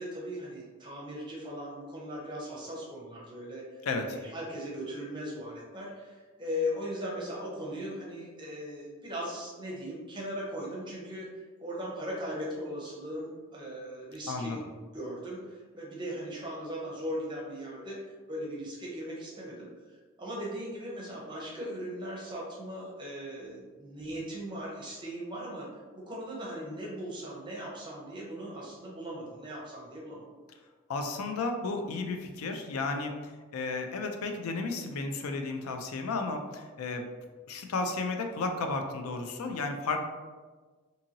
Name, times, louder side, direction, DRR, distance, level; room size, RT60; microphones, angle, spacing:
voice 1, 0.0-14.6 14.9-25.7 25.9-30.2, equal, 20° right, -4 dB, 0.6 m, -38 dB
voice 2, 3.9-4.2 14.3-14.6 30.9-33.2 33.5-37.1 37.5-40.0, left 3 dB, 85° left, 5 dB, 0.4 m, -33 dB
2.7 x 2.6 x 2.7 m, 1.4 s
head